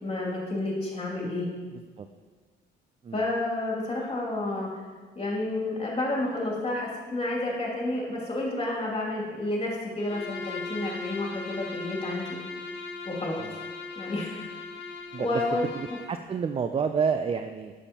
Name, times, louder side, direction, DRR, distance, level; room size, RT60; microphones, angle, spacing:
voice 1, 0.0-1.5 3.1-4.7 5.2-12.4 13.0-13.4 14.0-14.5 15.2-15.7, left 2 dB, 30° left, -3 dB, 2.4 m, -30 dB
Bowed string instrument, 10.0-16.2, left 3 dB, 70° left, 1.2 m, -38 dB
voice 2, 15.7-17.7, right 6 dB, 30° right, 8 dB, 0.3 m, -29 dB
9.5 x 7.0 x 2.9 m, 1.5 s
cardioid pair, 90°, 20 cm